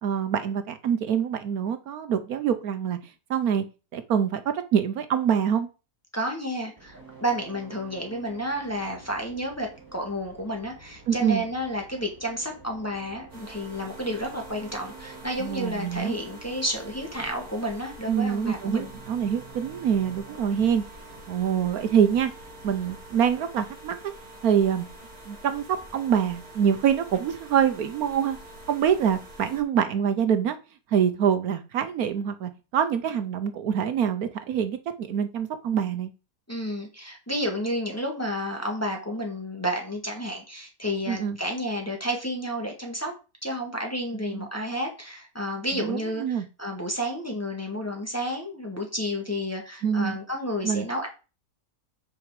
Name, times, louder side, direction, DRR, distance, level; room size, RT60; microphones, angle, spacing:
voice 1, 0.0-3.0 3.3-3.6 3.9-5.7 11.1-11.4 15.4-16.1 18.1-20.8 21.3-22.3 22.6-24.0 24.4-24.9 25.3-28.4 28.7-30.6 30.9-36.1 41.1-41.4 44.1-44.5 45.7-46.4 49.8-50.2 50.6-50.9, right 8 dB, 70° right, 10 dB, 1.2 m, -25 dB
voice 2, 6.1-18.9 36.5-43.1 43.4-51.1, equal, 10° left, 1 dB, 1.6 m, -31 dB
sound 1, 6.8-22.9, right 4 dB, 15° right, 1.8 m, -49 dB
sound 2, 13.3-29.6, right 1 dB, 45° right, 3.7 m, -46 dB
8.5 x 4.8 x 4.8 m, 0.32 s
omnidirectional pair, 1.7 m